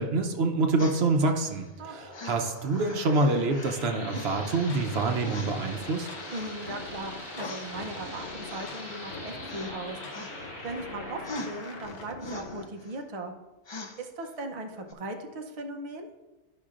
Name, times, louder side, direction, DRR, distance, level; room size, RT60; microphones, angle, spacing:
voice 1, 0.0-6.1, right 3 dB, 70° right, 4 dB, 0.9 m, -26 dB
sound 1, 0.8-1.7 2.1-3.8 4.1-4.7 5.2-5.8 6.2-6.8 7.4-9.1 9.4-9.7 10.1-10.8 11.2-13.0 13.7-14.3 14.9-15.0, left 3 dB, 35° left, 0.5 m, -43 dB
sound 2, 1.8-11.8, left 1 dB, 65° left, 2.5 m, -43 dB
sound 3, 4.5-12.7, left 3 dB, 90° left, 1.1 m, -44 dB
voice 2, 6.3-10.4 10.6-13.3 14.0-16.1, right 2 dB, 40° right, 3 dB, 0.7 m, -38 dB
12.0 x 5.6 x 2.4 m, 1.1 s
omnidirectional pair, 1.1 m